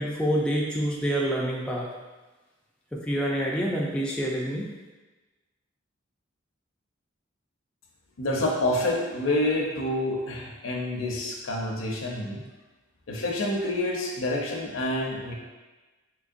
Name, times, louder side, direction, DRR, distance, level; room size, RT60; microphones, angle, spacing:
voice 1, 0.0-1.9 2.9-4.7, equal, 5° left, -4 dB, 0.4 m, -27 dB
voice 2, 8.2-12.4 13.1-15.3, left 1 dB, 75° left, 0 dB, 0.6 m, -28 dB
3.8 x 3.1 x 2.5 m, 1.2 s
head